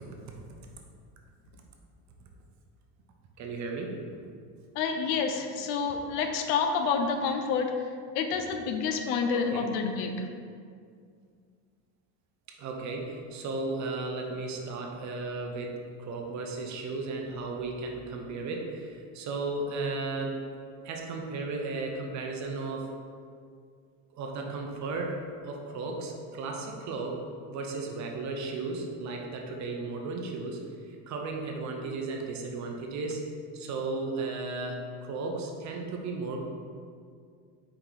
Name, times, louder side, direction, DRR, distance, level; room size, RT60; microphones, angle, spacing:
voice 1, 3.4-4.0 9.3-9.7 12.6-20.4 20.8-22.9 24.1-25.2 25.4-27.2 27.5-30.6 30.9-33.2 33.5-36.4, right 3 dB, 40° right, 1 dB, 0.6 m, -35 dB
voice 2, 4.8-7.7 8.1-10.1, left 5 dB, 70° left, 5 dB, 0.6 m, -28 dB
4.8 x 2.7 x 3.9 m, 2.2 s
supercardioid pair, 125°, 44 cm